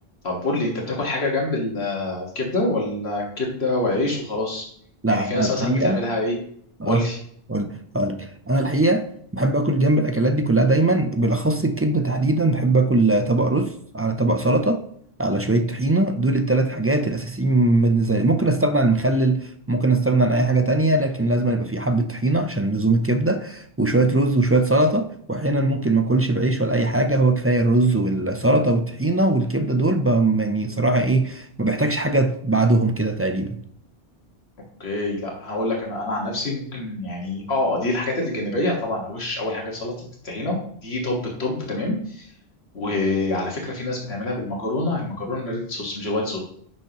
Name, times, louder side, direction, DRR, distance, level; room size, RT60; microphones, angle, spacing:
voice 1, 0.2-4.7 5.1-6.3 6.8-7.2 34.8-40.6 40.8-42.3 42.7-46.4, left 2 dB, 85° left, -1 dB, 2.0 m, -26 dB
voice 2, 5.0-6.0 6.8-7.0 7.5-9.1 9.3-14.8 15.2-33.6, right 2 dB, 20° right, 7 dB, 0.4 m, -20 dB
10.0 x 6.3 x 3.0 m, 0.64 s
omnidirectional pair, 1.0 m